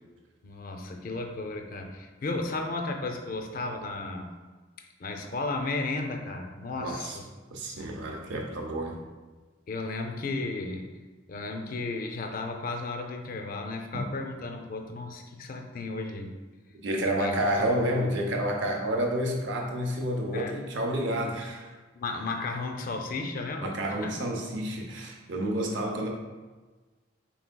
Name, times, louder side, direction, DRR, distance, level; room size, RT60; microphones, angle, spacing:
voice 1, 0.4-4.3 5.0-7.3 9.7-10.9 11.3-16.3 17.0-17.4 20.3-20.5 21.9-23.8 24.0-24.3, left 3 dB, 50° left, 4 dB, 0.4 m, -34 dB
voice 2, 6.8-7.2 7.5-9.0 13.9-14.0 16.7-21.7 23.6-26.1, right 1 dB, 70° right, 1 dB, 0.6 m, -29 dB
4.6 x 3.4 x 2.2 m, 1.3 s
head